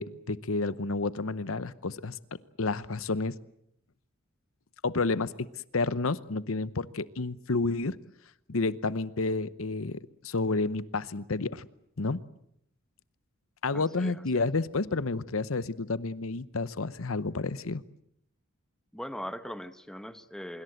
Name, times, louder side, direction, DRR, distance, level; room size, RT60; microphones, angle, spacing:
voice 1, 0.0-2.2 2.6-3.3 4.8-5.5 5.7-8.0 8.5-11.7 12.0-12.2 13.6-17.8, left 3 dB, 70° left, 16 dB, 0.9 m, -30 dB
voice 2, 13.7-14.4 18.9-20.6, equal, 5° left, 11 dB, 1.0 m, -40 dB
25.5 x 22.5 x 8.0 m, 0.73 s
head